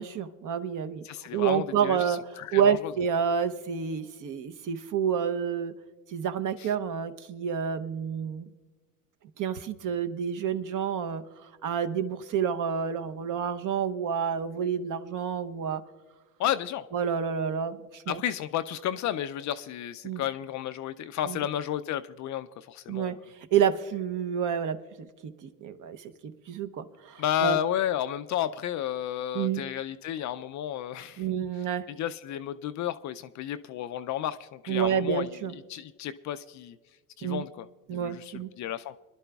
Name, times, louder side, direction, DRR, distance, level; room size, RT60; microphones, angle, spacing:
voice 1, 0.0-1.0 1.3-2.2 2.5-5.7 6.1-8.5 9.4-15.8 16.9-18.2 20.0-20.2 21.3-21.4 22.9-23.2 23.5-27.6 29.3-29.6 31.2-31.8 34.7-35.5 37.2-37.4 37.9-38.5, right 7 dB, 45° right, 10 dB, 0.8 m, -29 dB
voice 2, 1.0-2.9 6.6-6.7 16.4-16.8 18.1-23.2 27.2-31.2 31.9-35.3 35.7-36.8 37.2-38.9, left 11 dB, 45° left, 11 dB, 0.4 m, -32 dB
25.0 x 11.5 x 2.3 m, 1.3 s
supercardioid pair, 90°, 43 cm